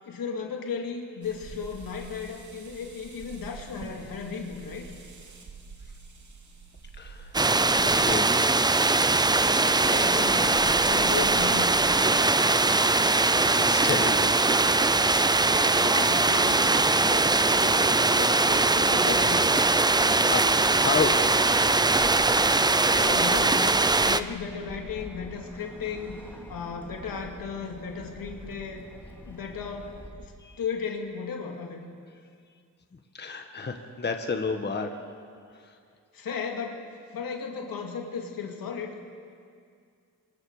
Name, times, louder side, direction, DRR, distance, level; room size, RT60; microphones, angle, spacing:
voice 1, 0.0-4.9 9.8-12.4 15.5-16.7 17.1-19.5 20.0-20.4 22.7-26.2 26.5-28.9 29.2-30.3 30.6-31.8 36.1-36.9 37.1-39.0, left 6 dB, 80° left, 2 dB, 2.7 m, -35 dB
sound 1, 1.2-11.5, right 4 dB, 55° right, 3.0 m, -45 dB
voice 2, 7.0-7.3 7.8-8.6 13.1-14.3 14.7-15.0 20.2-20.4 20.7-21.2 30.4-30.5 33.1-35.0, left 5 dB, 30° left, 5 dB, 1.4 m, -31 dB
sound 2, 7.3-24.2, right 3 dB, 10° right, 0.5 m, -21 dB
Bird, 20.0-30.1, left 1 dB, 5° left, 3.0 m, -46 dB
27.0 x 25.0 x 4.9 m, 2.3 s
wide cardioid pair, 120°, 34 cm